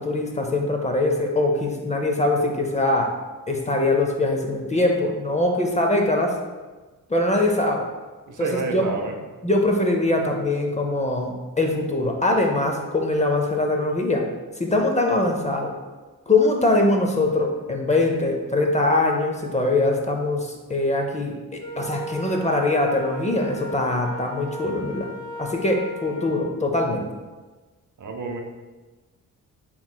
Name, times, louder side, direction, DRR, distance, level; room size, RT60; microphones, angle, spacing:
voice 1, 0.0-3.1 3.5-6.3 7.1-7.9 8.4-8.9 9.4-14.2 14.6-15.7 16.3-21.4 21.8-25.1 25.4-27.1, left 2 dB, 20° left, 2 dB, 0.5 m, -22 dB
voice 2, 8.3-9.2 28.0-28.4, right 3 dB, 60° right, 3 dB, 0.7 m, -29 dB
Wind instrument woodwind instrument, 21.6-26.5, left 2 dB, 90° left, 0.9 m, -36 dB
7.3 x 3.0 x 2.2 m, 1.3 s
cardioid pair, 105°, 34 cm